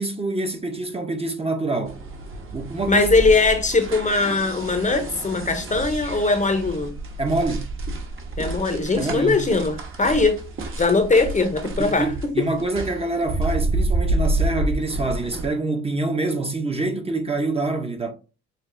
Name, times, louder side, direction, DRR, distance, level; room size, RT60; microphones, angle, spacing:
voice 1, 0.0-2.0 2.5-3.1 7.2-7.7 9.0-9.4 11.8-18.1, right 2 dB, 20° right, 0.7 m, -26 dB
sound 1, 1.8-15.5, right 2 dB, 45° right, 1.1 m, -29 dB
voice 2, 2.9-6.9 8.4-10.4 10.8-12.1 12.4-12.5, left 3 dB, 25° left, 0.7 m, -20 dB
6.6 x 2.3 x 2.6 m
cardioid pair, 90°, 30 cm